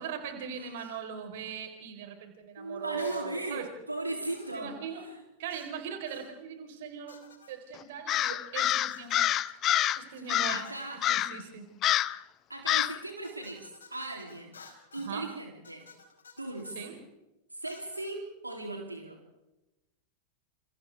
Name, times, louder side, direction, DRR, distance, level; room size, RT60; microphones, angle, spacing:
voice 1, 0.0-3.6 4.5-5.0 5.4-7.2 7.5-9.3 10.0-10.6 11.1-11.7 15.0-15.3 16.8-16.9, right 7 dB, 55° right, 5 dB, 4.2 m, -40 dB
sound 1, 0.8-1.0 3.0-3.3 4.3-4.7 5.5-5.8 6.1-6.3 7.1-7.6 8.9-11.0 13.2-15.2 15.6-16.9 17.7-18.2, left 5 dB, 70° left, 4.6 m, -54 dB
voice 2, 2.6-5.2 10.2-11.2 12.5-14.6 14.9-15.9 16.4-17.0 17.5-19.2, right 2 dB, 85° right, 2 dB, 3.1 m, -38 dB
Crow, 8.1-10.0 10.3-10.7 11.0-11.4 11.8-12.2 12.7-13.0, left 13 dB, 35° left, 0.7 m, -27 dB
30.0 x 28.5 x 3.5 m, 0.98 s
figure-of-eight pair, 90°, 0 cm